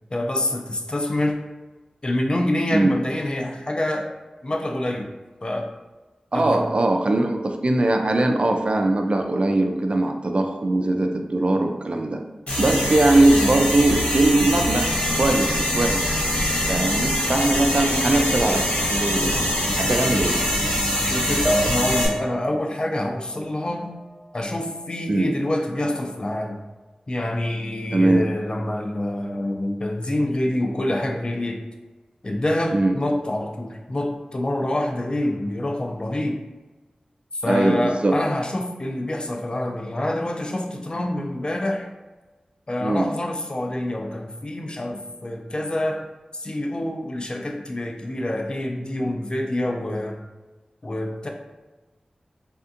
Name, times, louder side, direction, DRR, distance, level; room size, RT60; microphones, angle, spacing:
voice 1, 0.1-1.4 2.0-4.1 4.4-5.1 5.4-5.7 6.3-6.6 21.0-23.9 24.3-26.6 27.1-31.6 32.2-36.4 37.3-41.9 42.7-46.1 46.3-50.2 50.8-51.3, left 1 dB, 40° left, 2 dB, 0.4 m, -26 dB
voice 2, 6.3-12.2 12.6-14.9 15.1-16.1 16.7-20.4 25.1-25.3 27.9-28.3 32.7-32.9 37.5-38.1 42.8-43.1, right 2 dB, 50° right, 4 dB, 0.4 m, -21 dB
sound 1, 12.5-22.1, equal, 60° left, 0.8 m, -23 dB
sound 2, 21.4-24.9 25.2-26.3, right 1 dB, 15° right, 0.7 m, -32 dB
3.3 x 2.7 x 2.5 m, 1.2 s
cardioid pair, 40°, 2 cm